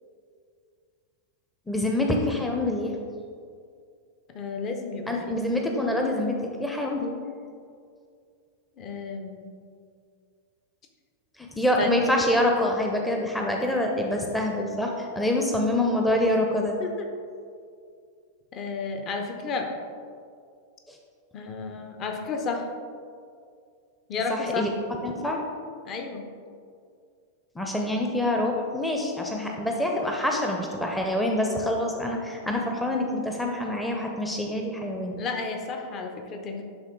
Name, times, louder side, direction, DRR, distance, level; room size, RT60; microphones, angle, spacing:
voice 1, 1.7-2.9 5.1-7.1 11.4-16.8 20.9-21.0 24.3-24.7 25.0-25.4 27.6-35.2, left 1 dB, 5° left, 1 dB, 0.7 m, -26 dB
voice 2, 4.3-5.4 8.8-9.5 11.8-12.0 16.8-17.1 18.5-19.7 21.3-22.7 24.1-24.7 25.8-26.3 35.2-36.6, left 4 dB, 35° left, 4 dB, 0.8 m, -32 dB
10.5 x 3.7 x 3.7 m, 2.3 s
figure-of-eight pair, 90°, 0 cm